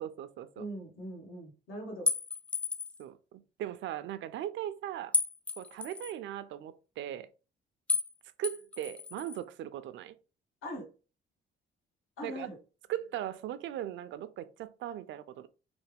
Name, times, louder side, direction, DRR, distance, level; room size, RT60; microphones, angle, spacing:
voice 1, 0.0-0.7 3.0-5.1 5.6-7.3 8.4-10.2 12.2-12.5 12.9-15.5, right 11 dB, 70° right, 0.4 m, -39 dB
voice 2, 0.6-2.1 10.6-10.9 12.2-12.6, equal, 85° left, 1.5 m, -41 dB
sound 1, 2.1-3.0 5.1-6.1 7.9-8.1 8.4-9.4, left 4 dB, 5° left, 0.4 m, -32 dB
3.3 x 2.1 x 3.4 m
cardioid pair, 90°, 20 cm